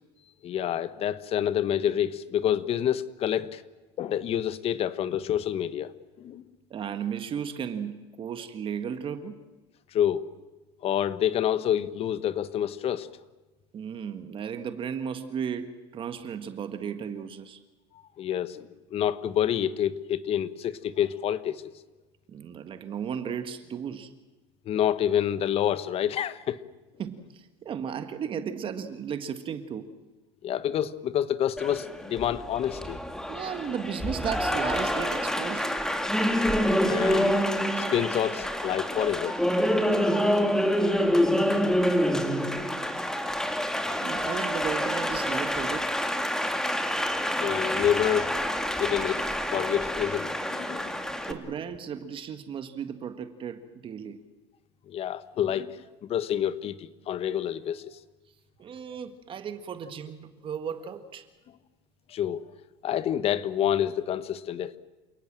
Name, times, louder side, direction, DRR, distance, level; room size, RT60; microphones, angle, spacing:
voice 1, 0.4-3.6 4.0-5.9 6.2-6.4 9.9-10.2 10.8-13.1 18.2-21.6 24.7-26.6 30.4-33.0 36.8-37.4 37.8-39.4 47.4-48.4 48.8-49.2 49.5-50.9 54.9-55.8 56.1-57.9 62.1-62.4 62.8-64.8, left 10 dB, 45° left, 1.2 m, -28 dB
voice 2, 6.7-9.4 13.7-17.6 22.3-24.1 27.0-29.9 33.3-35.7 39.8-40.4 44.0-45.9 51.3-54.2 58.6-61.3, right 7 dB, 40° right, 1.7 m, -35 dB
Applause, 31.6-51.3, equal, 5° left, 2.1 m, -27 dB
28.0 x 18.5 x 7.6 m
supercardioid pair, 105°, 14 cm